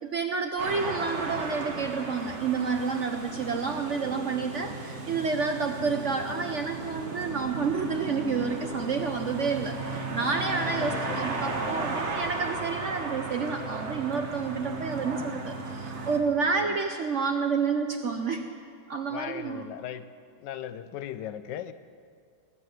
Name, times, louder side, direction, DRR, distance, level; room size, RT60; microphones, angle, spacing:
voice 1, 0.0-18.4 18.9-19.7, right 5 dB, 60° right, 5 dB, 0.8 m, -29 dB
sound 1, 0.6-16.2, right 3 dB, 40° right, 1.5 m, -35 dB
voice 2, 0.7-1.1 3.4-3.6 5.8-6.0 10.6-11.3 16.6-16.8 19.1-20.1 20.4-21.7, left 10 dB, 75° left, 12 dB, 1.2 m, -39 dB
19.5 x 7.8 x 7.9 m, 2.2 s
omnidirectional pair, 2.0 m